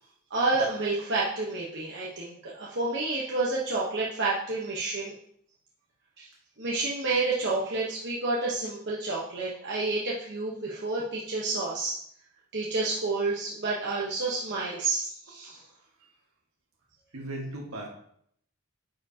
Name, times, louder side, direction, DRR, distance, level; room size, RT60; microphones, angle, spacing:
voice 1, 0.3-5.1 6.2-6.3 6.6-11.9 12.5-15.6, right 3 dB, 50° right, -5 dB, 1.1 m, -29 dB
voice 2, 15.3-15.9 17.1-17.9, right 1 dB, 70° right, -1 dB, 1.6 m, -39 dB
9.7 x 4.9 x 2.8 m, 0.68 s
head